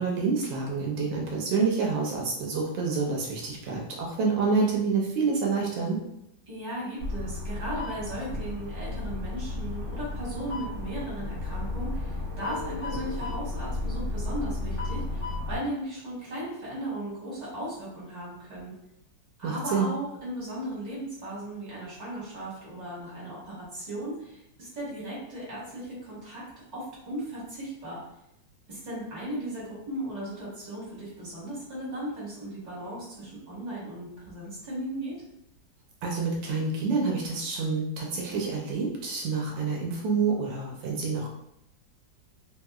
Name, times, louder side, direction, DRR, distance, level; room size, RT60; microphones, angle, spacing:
voice 1, 0.0-6.0 19.4-19.9 36.0-41.3, right 4 dB, 80° right, -1 dB, 1.3 m, -28 dB
voice 2, 6.5-18.7 19.4-26.4 26.7-28.0 28.7-35.2, right 1 dB, 25° right, -7 dB, 1.4 m, -36 dB
sound 1, 7.0-15.6, left 2 dB, 45° left, 1.1 m, -33 dB
3.4 x 2.7 x 2.3 m, 0.80 s
omnidirectional pair, 2.0 m